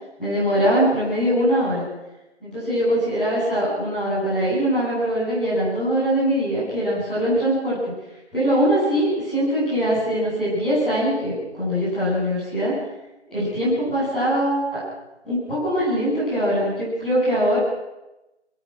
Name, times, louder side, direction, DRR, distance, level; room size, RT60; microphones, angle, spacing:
voice 1, 0.2-1.8 2.4-7.9 8.3-12.7 13.3-14.8 15.2-17.6, equal, ahead, -20 dB, 7.7 m, -22 dB
25.5 x 17.0 x 6.5 m, 0.98 s
figure-of-eight pair, 175°, 34 cm